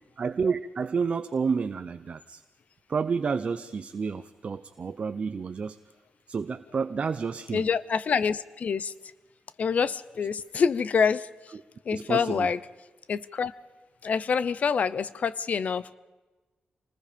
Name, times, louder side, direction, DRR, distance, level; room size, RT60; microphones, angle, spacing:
voice 1, 0.2-2.4 2.9-5.8 6.3-7.6 11.9-12.5, right 5 dB, 40° right, 10 dB, 0.6 m, -30 dB
voice 2, 7.5-8.9 9.6-11.3 11.9-12.6 13.1-13.5 14.0-16.0, left 6 dB, 50° left, 17 dB, 0.7 m, -26 dB
27.0 x 20.0 x 5.2 m, 1.2 s
wide cardioid pair, 165°, 3 cm